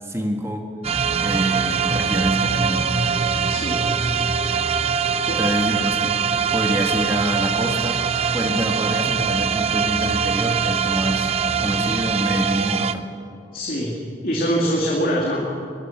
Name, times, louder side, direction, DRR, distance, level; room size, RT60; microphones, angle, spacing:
voice 1, 0.0-0.7 1.2-2.9 5.4-6.2 6.5-8.0 8.3-13.0, right 1 dB, 15° right, 3 dB, 1.6 m, -26 dB
sound 1, 0.8-12.9, right 6 dB, 35° right, 0.7 m, -22 dB
voice 2, 3.5-3.8 5.2-5.4 13.5-13.9 14.2-15.4, equal, 50° left, -3 dB, 2.7 m, -23 dB
sound 2, 3.6-11.9, equal, 65° right, 6.1 m, -41 dB
21.5 x 21.0 x 6.0 m, 2.6 s
head